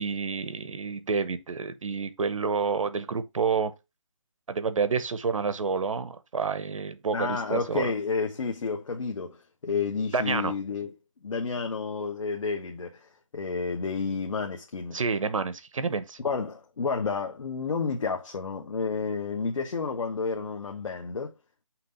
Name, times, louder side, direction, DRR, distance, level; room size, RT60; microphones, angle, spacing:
voice 1, 0.0-3.7 4.5-7.9 10.1-10.5 14.9-16.2, right 5 dB, 75° right, 0.9 m, -29 dB
voice 2, 7.1-10.9 11.2-15.0 16.2-21.3, left 5 dB, 75° left, 1.1 m, -30 dB
5.9 x 2.9 x 5.4 m
hypercardioid pair, 160°, 17 cm